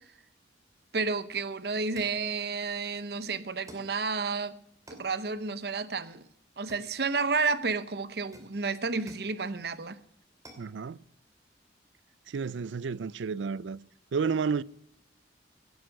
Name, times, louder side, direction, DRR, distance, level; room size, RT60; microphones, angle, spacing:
voice 1, 0.9-4.5 4.9-6.2 6.6-10.0, right 4 dB, 60° right, 0.8 m, -31 dB
sound 1, 2.0-2.3 3.7-4.0 4.9-5.2 6.7-7.3 8.3-9.4 10.4-10.7, right 1 dB, 20° right, 2.6 m, -52 dB
voice 2, 10.6-11.0 12.3-13.8 14.1-14.6, right 5 dB, 85° right, 0.4 m, -31 dB
17.0 x 9.3 x 6.4 m
head